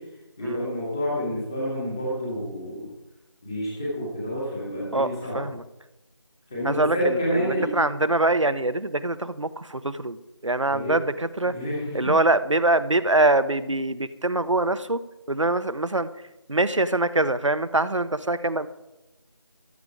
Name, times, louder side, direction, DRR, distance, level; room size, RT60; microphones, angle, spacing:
voice 1, 0.4-2.9 3.4-5.5 6.5-7.7 10.7-10.9 11.4-12.1, equal, 10° left, -6 dB, 2.2 m, -29 dB
voice 2, 6.6-11.5 11.9-15.0 15.3-16.1 16.5-18.7, right 2 dB, 85° right, 13 dB, 1.1 m, -24 dB
14.5 x 12.5 x 4.8 m, 0.98 s
figure-of-eight pair, 175°, 15 cm